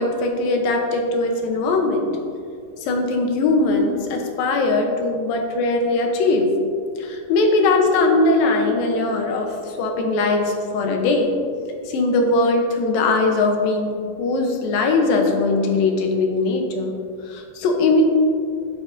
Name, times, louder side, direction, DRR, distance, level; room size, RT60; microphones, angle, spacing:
voice 1, 0.0-2.1 2.9-6.5 7.0-11.4 11.9-16.9 17.3-18.0, left 3 dB, 75° left, 3 dB, 2.7 m, -20 dB
11.0 x 9.8 x 2.7 m, 2.4 s
omnidirectional pair, 4.3 m